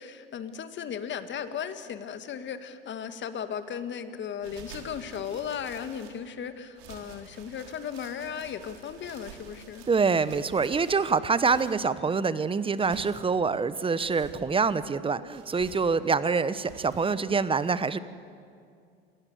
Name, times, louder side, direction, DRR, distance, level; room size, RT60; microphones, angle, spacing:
voice 1, 0.0-9.9, left 8 dB, 35° left, 10 dB, 1.9 m, -36 dB
sound 1, 4.4-6.3 6.8-11.8 12.5-13.3 13.9-14.4 15.3-16.0 16.6-17.1, right 7 dB, 65° right, 3.9 m, -49 dB
voice 2, 9.9-18.0, right 5 dB, 15° right, 15 dB, 1.0 m, -26 dB
28.0 x 16.0 x 8.1 m, 2.3 s
hypercardioid pair, 85°, 31 cm